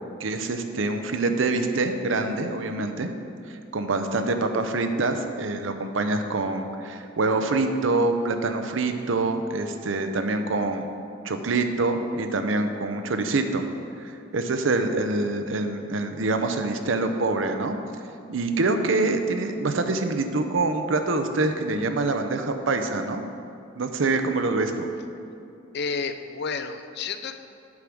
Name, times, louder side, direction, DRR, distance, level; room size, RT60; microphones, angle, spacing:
voice 1, 0.2-3.1 3.7-10.9 11.2-13.6 14.0-17.8 18.3-23.2 23.8-24.9, right 3 dB, 70° right, 7 dB, 0.6 m, -25 dB
voice 2, 25.7-27.3, left 5 dB, 55° left, 9 dB, 0.5 m, -30 dB
8.4 x 5.0 x 6.1 m, 2.6 s
head